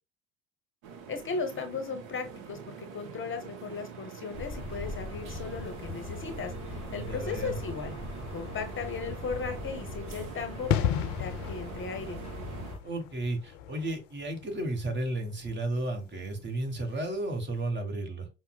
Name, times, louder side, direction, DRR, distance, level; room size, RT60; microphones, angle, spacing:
sound 1, 0.8-12.7, right 6 dB, 55° right, 0.8 m, -44 dB
voice 1, 1.1-8.0 8.3-12.2, left 5 dB, 30° left, 8 dB, 0.8 m, -37 dB
sound 2, 4.3-12.8, left 3 dB, 15° left, 1.2 m, -41 dB
voice 2, 6.9-7.6 12.8-18.3, right 2 dB, 30° right, 5 dB, 1.2 m, -33 dB
sound 3, 10.7-17.2 17.4-17.6, left 9 dB, 65° left, 0.5 m, -35 dB
5.5 x 2.1 x 2.3 m, 0.29 s
hypercardioid pair, 65°, 39 cm